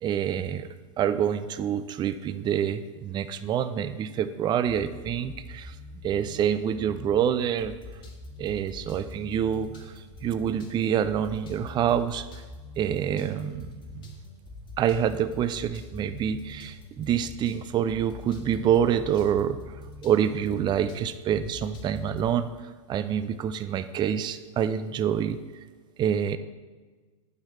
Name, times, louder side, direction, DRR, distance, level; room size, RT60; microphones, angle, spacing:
voice 1, 0.0-0.7 1.0-5.8 6.0-7.7 8.4-12.4 12.8-14.1 14.8-25.4 26.0-26.4, right 9 dB, 25° right, 11 dB, 0.5 m, -27 dB
sound 1, 4.7-22.4, left 2 dB, 30° left, 1.6 m, -44 dB
9.6 x 4.8 x 7.4 m, 1.3 s
hypercardioid pair, 120°, 17 cm